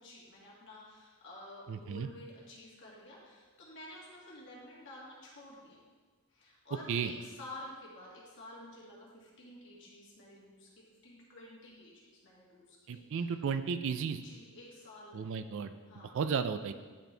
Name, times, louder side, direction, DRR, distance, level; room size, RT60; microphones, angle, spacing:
voice 1, 0.0-5.8 6.3-10.7 11.0-13.3 14.1-15.3 15.9-16.2, left 1 dB, 55° left, -5 dB, 1.8 m, -51 dB
voice 2, 1.7-2.1 6.9-7.1 12.9-14.2 15.1-15.7 16.1-16.7, right 6 dB, 60° right, 10 dB, 0.3 m, -33 dB
10.5 x 4.4 x 3.3 m, 1.4 s
head